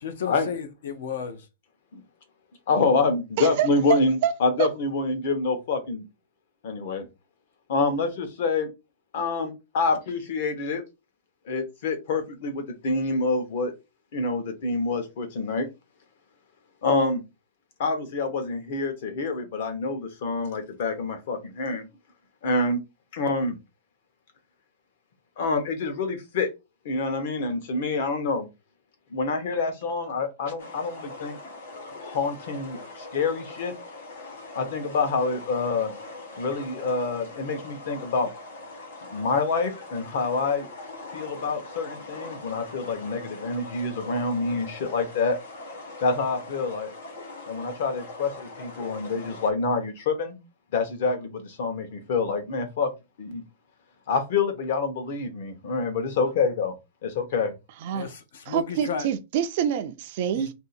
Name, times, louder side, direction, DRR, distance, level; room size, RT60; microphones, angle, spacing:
voice 1, 0.0-1.5 57.9-59.1 60.3-60.5, left 7 dB, 65° left, 0.7 m, -33 dB
voice 2, 2.7-6.0 6.6-7.1 7.7-8.7 9.1-10.8 11.5-13.7 14.1-15.7 16.8-17.2 17.8-21.9 22.4-22.8 23.1-23.6 25.4-26.5 26.8-28.5 29.1-31.4 32.0-33.7 34.5-35.9 36.4-38.3 39.1-40.7 41.1-45.3 46.0-46.9 47.5-48.3 48.6-50.4 50.7-52.9 53.2-53.4 54.1-56.7 57.0-57.5, left 3 dB, 50° left, 1.0 m, -27 dB
voice 3, 3.4-4.3 4.6-4.7 57.8-58.1 58.5-60.5, right 9 dB, 40° right, 0.4 m, -26 dB
sound 1, 30.6-49.5, left 2 dB, 85° left, 1.4 m, -41 dB
2.8 x 2.7 x 4.1 m
supercardioid pair, 180°, 0 cm